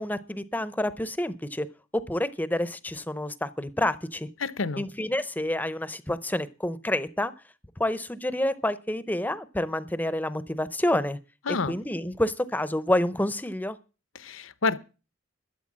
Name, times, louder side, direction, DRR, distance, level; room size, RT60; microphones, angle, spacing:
voice 1, 0.0-1.7 1.9-4.3 4.8-7.3 7.8-11.2 11.6-13.8, left 1 dB, 10° left, 0.6 m, -28 dB
voice 2, 4.4-4.8 11.5-11.8 14.1-14.8, left 4 dB, 75° left, 0.8 m, -28 dB
12.5 x 8.0 x 7.3 m
head